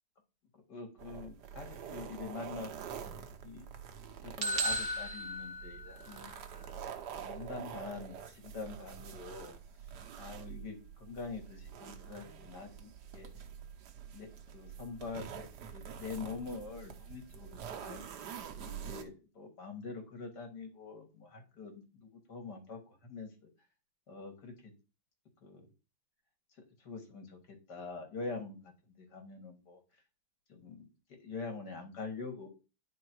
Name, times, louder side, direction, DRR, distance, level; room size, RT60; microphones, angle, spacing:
voice 1, 0.7-3.1 3.4-3.7 4.2-6.5 7.2-9.5 10.2-13.3 14.1-15.5 15.7-18.0 18.6-23.5 24.1-24.7 25.4-25.7 26.8-28.7 29.0-29.8 30.5-30.9 31.2-32.5, left 4 dB, 65° left, 4 dB, 2.8 m, -45 dB
sound 1, 1.0-19.0, right 8 dB, 65° right, 1.5 m, -46 dB
sound 2, 4.4-6.3, right 1 dB, 45° right, 0.7 m, -35 dB
10.0 x 4.7 x 4.7 m, 0.31 s
omnidirectional pair, 2.0 m